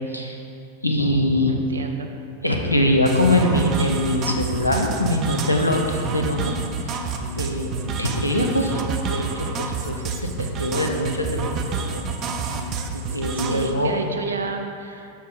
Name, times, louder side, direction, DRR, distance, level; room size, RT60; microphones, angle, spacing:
voice 1, 0.1-0.4 0.8-1.5 2.4-6.5 6.8-7.1 7.4-12.1 12.9-13.9, left 1 dB, 90° left, 1 dB, 0.8 m, -23 dB
voice 2, 1.5-2.1 13.4-15.1, right 4 dB, 70° right, 4 dB, 0.6 m, -30 dB
sound 1, 3.1-13.7, right 4 dB, 35° right, 0.6 m, -28 dB
7.0 x 6.5 x 3.8 m, 2.4 s
figure-of-eight pair, 90°, 0 cm